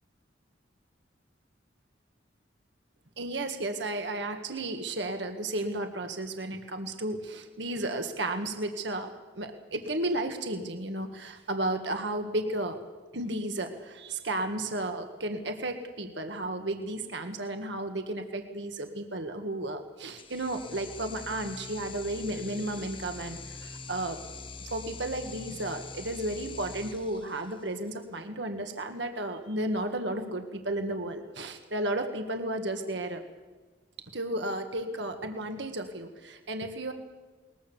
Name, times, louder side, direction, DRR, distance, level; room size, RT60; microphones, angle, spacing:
voice 1, 3.2-12.8 13.1-24.2 24.6-33.2 34.1-36.9, right 1 dB, 65° right, 6 dB, 1.8 m, -33 dB
sound 1, 20.2-27.8, left 4 dB, 30° left, 0.9 m, -44 dB
21.5 x 21.0 x 7.2 m, 1.3 s
head